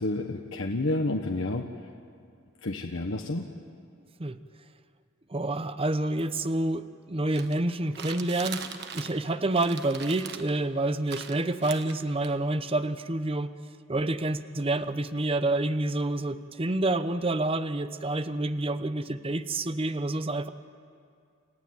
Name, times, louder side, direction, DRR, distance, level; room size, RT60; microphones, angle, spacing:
voice 1, 0.0-1.7 2.6-3.4, left 2 dB, 70° left, 3 dB, 1.2 m, -29 dB
voice 2, 5.3-8.6 8.9-13.5 13.9-20.5, right 2 dB, 25° right, 12 dB, 0.7 m, -28 dB
sound 1, 7.3-9.3 9.5-10.6 11.1-12.3, right 7 dB, 50° right, 1.4 m, -40 dB
28.5 x 14.5 x 9.5 m, 2.3 s
head